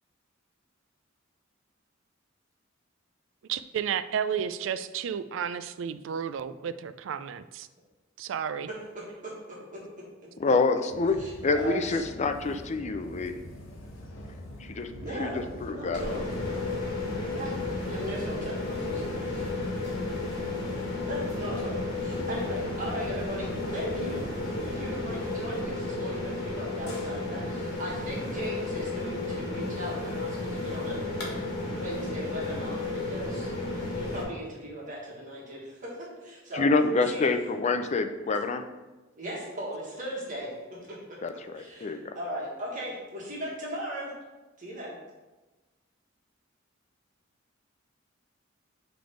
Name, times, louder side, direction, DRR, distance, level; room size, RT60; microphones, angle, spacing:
voice 1, 3.5-7.7 8.2-8.7, right 8 dB, 70° right, 13 dB, 0.3 m, -32 dB
voice 2, 9.5-9.8 11.2-12.0 15.0-16.2 17.3-17.5 17.8-18.5 18.9-19.2 21.1-31.4 31.7-33.5 34.0-35.9 36.2-36.7 36.9-37.2 39.1-40.5 40.9-44.1 44.6-44.9, equal, 40° right, -5 dB, 1.5 m, -38 dB
voice 3, 10.4-11.2 11.4-13.3 14.6-14.9 15.2-16.0 36.5-38.6 41.2-42.1, left 3 dB, 35° left, 8 dB, 0.4 m, -27 dB
sound 1, 10.9-25.4, equal, 80° left, 0.9 m, -43 dB
sound 2, 15.9-34.2, left 2 dB, 55° left, 1.6 m, -33 dB
6.0 x 3.4 x 5.0 m, 1.1 s
head